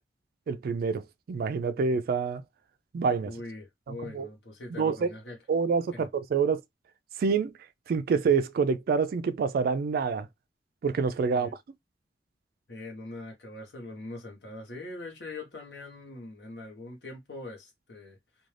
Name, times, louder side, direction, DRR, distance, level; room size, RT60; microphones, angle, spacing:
voice 1, 0.5-2.4 2.9-3.3 4.1-4.3 4.8-5.1 5.5-6.6 7.2-7.5 7.9-10.3 10.8-11.5, right 5 dB, 55° right, 0.3 m, -27 dB
voice 2, 3.2-5.4 5.9-6.1 11.3-11.5 12.7-18.2, left 2 dB, 65° left, 1.0 m, -42 dB
2.5 x 2.3 x 3.2 m
head